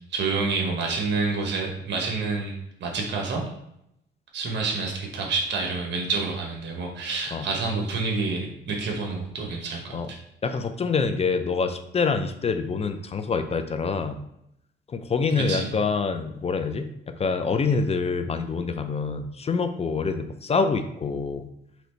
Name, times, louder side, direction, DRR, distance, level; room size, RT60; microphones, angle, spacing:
voice 1, 0.1-2.5 2.8-3.4 4.3-10.2 15.4-15.7, right 4 dB, 60° right, 0 dB, 1.0 m, -28 dB
voice 2, 10.4-14.2 14.9-21.5, left 4 dB, 30° left, 8 dB, 0.5 m, -26 dB
4.0 x 3.0 x 4.4 m, 0.80 s
cardioid pair, 90°, 20 cm